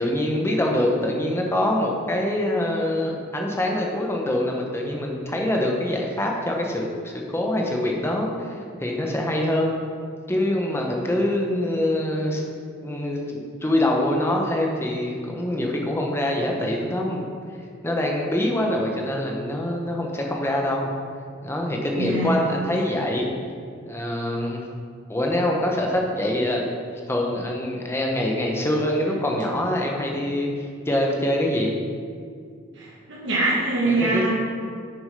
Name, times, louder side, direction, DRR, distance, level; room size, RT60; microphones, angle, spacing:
voice 1, 0.0-9.7 10.3-12.4 12.8-17.3 17.8-20.9 21.4-23.3 23.7-24.6 25.1-26.6 27.1-30.5 30.9-31.8 33.9-34.3, left 1 dB, 10° left, 0 dB, 1.0 m, -24 dB
voice 2, 22.0-22.3 32.8-34.3, right 2 dB, 60° right, -7 dB, 1.6 m, -23 dB
7.1 x 6.7 x 5.2 m, 2.2 s
head